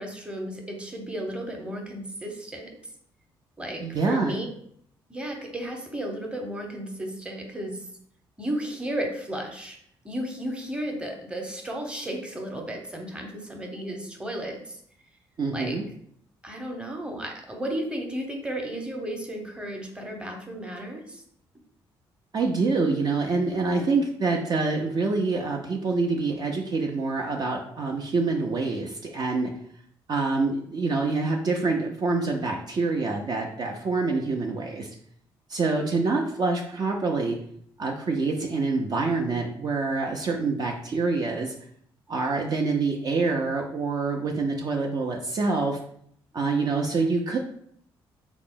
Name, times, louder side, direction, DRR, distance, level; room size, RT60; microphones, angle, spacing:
voice 1, 0.0-2.7 3.6-4.5 5.1-7.8 8.4-9.8 10.0-14.8 15.5-15.8 16.4-21.2, right 1 dB, 10° right, 2 dB, 0.8 m, -34 dB
voice 2, 3.8-4.3 15.4-15.8 22.3-29.5 30.1-34.9 35.5-37.4 37.8-41.5 42.1-45.8 46.3-47.4, right 3 dB, 45° right, 0 dB, 0.5 m, -26 dB
3.8 x 2.0 x 3.7 m, 0.67 s
supercardioid pair, 70°, 10 cm